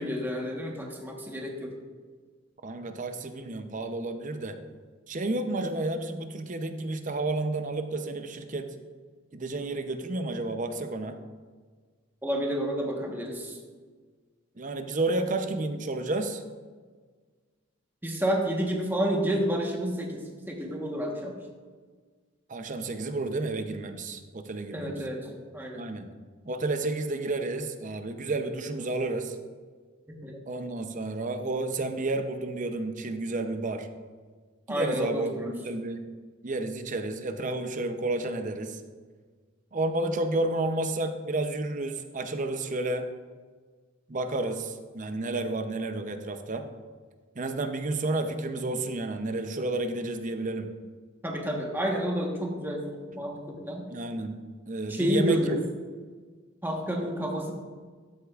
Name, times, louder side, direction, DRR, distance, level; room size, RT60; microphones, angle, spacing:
voice 1, 0.0-1.7 12.2-13.6 18.0-21.3 24.7-25.8 30.2-30.4 34.7-35.5 51.2-53.9 54.9-55.6 56.6-57.5, equal, 10° right, 0 dB, 1.1 m, -30 dB
voice 2, 2.6-4.6 5.1-8.7 9.3-11.2 14.6-16.4 22.5-25.1 25.8-26.1 26.4-29.4 30.5-33.9 34.7-36.0 36.4-38.8 39.7-43.1 44.1-46.7 47.4-50.7 53.9-54.4 54.7-55.6, right 2 dB, 40° right, 8 dB, 0.6 m, -31 dB
12.5 x 8.2 x 2.4 m, 1.5 s
head